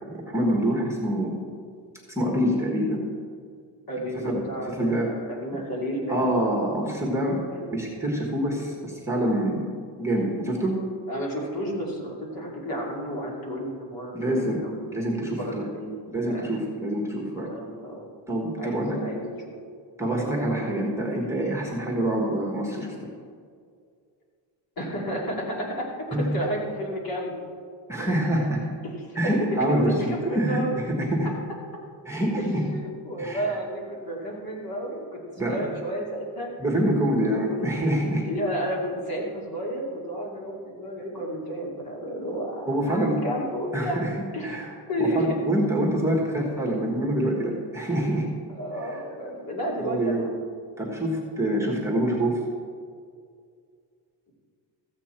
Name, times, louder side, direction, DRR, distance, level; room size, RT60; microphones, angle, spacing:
voice 1, 0.3-1.3 2.1-3.0 4.3-4.4 4.7-5.1 6.1-7.4 7.7-9.7 10.0-10.8 14.1-14.6 14.9-15.7 16.1-17.5 18.3-19.0 20.0-22.9 26.1-26.4 27.9-28.6 29.1-31.3 32.1-32.7 33.2-33.6 35.4-35.7 36.6-38.3 42.7-43.2 43.7-44.2 44.4-44.7 45.0-48.3 48.8-49.0 49.8-50.2 50.8-52.4, right 1 dB, 5° right, -2 dB, 1.4 m, -26 dB
voice 2, 3.9-5.0 5.3-6.3 7.5-7.7 11.1-15.1 15.4-16.0 16.2-16.5 17.5-18.1 18.6-19.5 20.6-20.7 24.8-27.4 29.0-29.3 29.8-30.8 32.5-36.5 37.2-37.6 38.2-44.0 44.3-44.6 44.9-45.4 48.5-50.1, equal, 50° left, -2 dB, 2.6 m, -32 dB
14.0 x 8.2 x 4.4 m, 2.2 s
cardioid pair, 155°, 46 cm